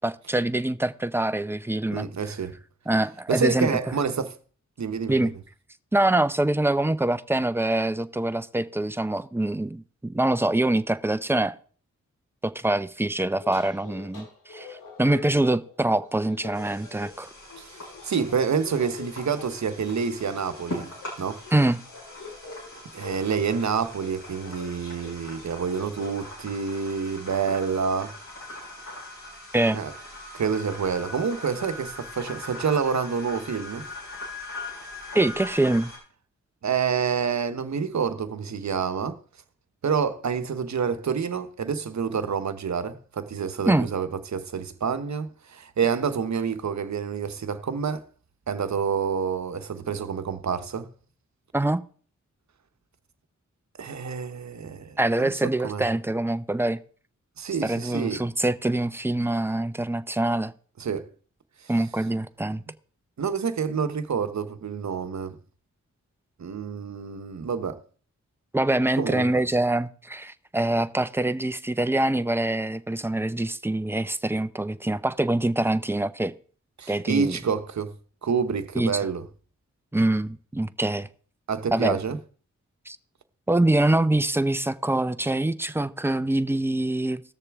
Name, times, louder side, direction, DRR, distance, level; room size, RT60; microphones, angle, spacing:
voice 1, 0.0-2.1 2.9-3.7 5.1-5.3 5.9-11.6 12.4-17.3 21.5-21.8 29.5-29.8 35.1-35.9 43.7-43.9 51.5-51.8 55.0-56.8 57.6-60.5 61.7-62.6 68.5-76.3 76.9-77.4 78.7-78.9 79.9-81.1 81.7-82.0 82.9-83.0 83.5-87.2, right 1 dB, 10° right, 0.6 m, -24 dB
voice 2, 1.9-2.6 3.3-4.3 4.8-5.3 17.6-20.9 21.2-21.4 22.9-28.1 29.7-29.9 30.3-33.9 36.6-39.2 39.8-48.0 48.5-50.9 53.8-55.8 57.4-58.2 60.8-61.1 63.2-65.4 66.4-67.8 69.0-69.3 76.8-77.9 78.2-79.3 81.5-82.2, right 6 dB, 65° right, 1.0 m, -28 dB
sound 1, 13.2-26.2, left 4 dB, 85° left, 2.3 m, -45 dB
sound 2, 16.5-36.0, left 2 dB, 65° left, 6.0 m, -41 dB
17.5 x 6.7 x 3.5 m
cardioid pair, 45°, 30 cm